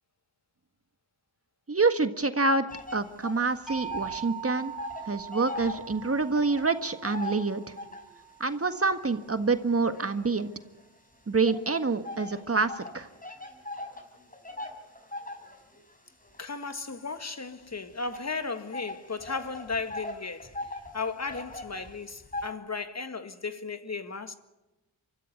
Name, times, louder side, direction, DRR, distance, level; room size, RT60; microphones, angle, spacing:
voice 1, 1.7-2.7 2.9-4.7 5.0-7.7 8.4-10.5 11.3-13.1, right 3 dB, 30° right, 1.6 m, -27 dB
sound 1, 2.7-4.3 4.5-8.2 8.8-10.8 11.5-22.5, left 2 dB, 15° left, 5.0 m, -41 dB
sound 2, 3.7-9.6, right 9 dB, ahead, 7.4 m, -42 dB
voice 2, 16.4-20.7 20.9-24.3, left 4 dB, 35° left, 1.7 m, -35 dB
24.5 x 14.0 x 9.3 m
supercardioid pair, 50°, 48 cm